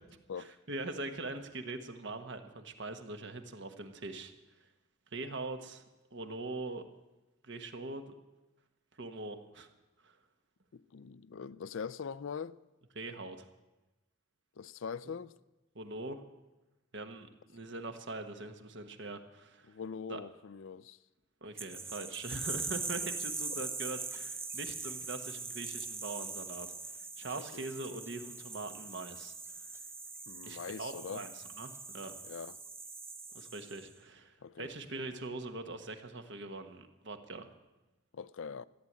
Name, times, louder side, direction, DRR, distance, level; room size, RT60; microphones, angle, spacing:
voice 1, 0.4-4.3 4.6-4.7 5.1-5.8 6.1-6.9 7.4-8.1 8.9-9.7 10.0-10.2 12.9-13.5 15.7-16.2 16.9-19.7 20.1-20.2 21.4-29.7 30.4-32.2 33.3-37.5, right 2 dB, 60° right, 1.3 m, -42 dB
voice 2, 10.7-12.6 14.6-15.3 19.7-21.0 23.0-23.1 23.5-23.6 27.4-27.7 30.3-31.2 32.3-32.6 34.4-34.7 38.1-38.7, left 6 dB, 70° left, 0.4 m, -42 dB
sound 1, 21.6-33.9, right 4 dB, 10° right, 0.7 m, -42 dB
14.5 x 9.5 x 8.7 m
head